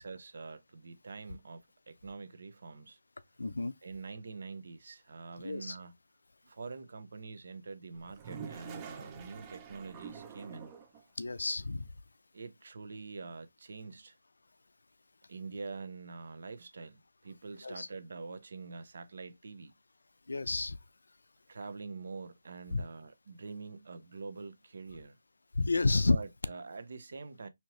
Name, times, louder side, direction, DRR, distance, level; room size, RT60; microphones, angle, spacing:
voice 1, 0.0-3.0 3.8-5.9 6.4-10.7 12.3-14.2 15.3-19.7 21.5-25.2 26.1-27.5, right 4 dB, 55° right, 0.8 m, -45 dB
voice 2, 3.4-3.7 5.4-5.8 11.2-11.9 17.6-17.9 20.3-20.8 22.7-22.8 25.5-26.2, left 3 dB, 85° left, 0.5 m, -30 dB
Toilet flush, 7.9-11.0, right 7 dB, 15° right, 0.5 m, -46 dB
4.3 x 2.9 x 3.1 m
hypercardioid pair, 170°, 0 cm